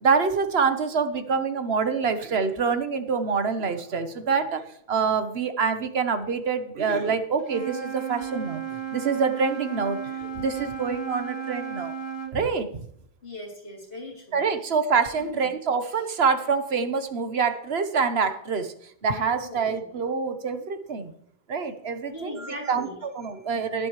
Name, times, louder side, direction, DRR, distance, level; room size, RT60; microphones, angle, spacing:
voice 1, 0.0-8.6 8.9-11.9 12.3-12.9 14.3-18.7 19.0-21.1 21.5-23.9, right 5 dB, 85° right, 9 dB, 1.3 m, -26 dB
Wind instrument woodwind instrument, 7.4-12.4, right 8 dB, 90° left, 2.2 m, -34 dB
voice 2, 13.2-14.4 15.2-15.5 19.4-19.9 22.1-23.0, left 1 dB, 65° left, -3 dB, 3.7 m, -39 dB
18.5 x 8.2 x 3.2 m, 0.66 s
omnidirectional pair, 1.0 m